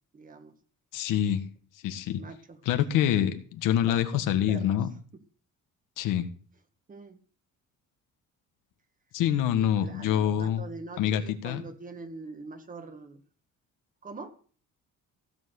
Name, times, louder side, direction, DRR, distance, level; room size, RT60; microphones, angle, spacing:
voice 1, 0.1-0.5 2.1-2.6 3.9-4.8 6.9-7.2 9.5-13.2 14.0-14.4, right 3 dB, 25° right, 8 dB, 1.7 m, -44 dB
voice 2, 0.9-1.4 1.8-2.2 2.6-4.9 6.0-6.3 9.1-10.6 11.0-11.6, left 10 dB, 90° left, 8 dB, 1.6 m, -26 dB
16.0 x 7.5 x 6.4 m, 0.42 s
cardioid pair, 150°, 31 cm